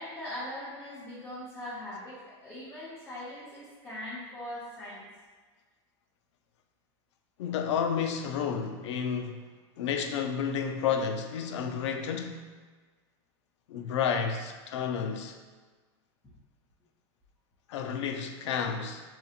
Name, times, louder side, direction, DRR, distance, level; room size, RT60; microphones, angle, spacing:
voice 1, 0.0-5.0, left 1 dB, 10° left, 0.7 m, -41 dB
voice 2, 7.4-9.4 9.8-12.5 13.7-15.4 17.7-19.0, left 7 dB, 80° left, 0.4 m, -31 dB
4.0 x 2.8 x 2.4 m
supercardioid pair, 150°, 15 cm